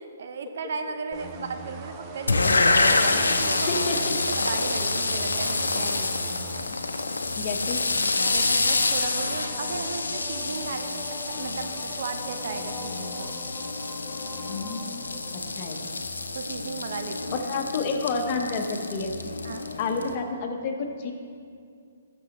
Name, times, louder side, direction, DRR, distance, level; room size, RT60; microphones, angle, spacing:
voice 1, 0.0-3.9 4.3-6.1 8.2-13.3 16.3-17.6 19.4-19.7, right 5 dB, 60° right, 8 dB, 0.6 m, -36 dB
sound 1, 1.1-6.6, right 3 dB, 25° right, 0.7 m, -41 dB
sound 2, 2.3-20.2, left 3 dB, 90° left, 0.6 m, -27 dB
voice 2, 3.7-4.1 6.7-6.8 7.4-7.8 14.5-15.2 15.6-15.9 17.5-19.1 19.8-21.1, left 4 dB, 40° left, 3 dB, 1.0 m, -30 dB
sound 3, 8.2-15.8, equal, ahead, 0.4 m, -45 dB
14.0 x 6.2 x 3.0 m, 2.3 s
hypercardioid pair, 135°, 0 cm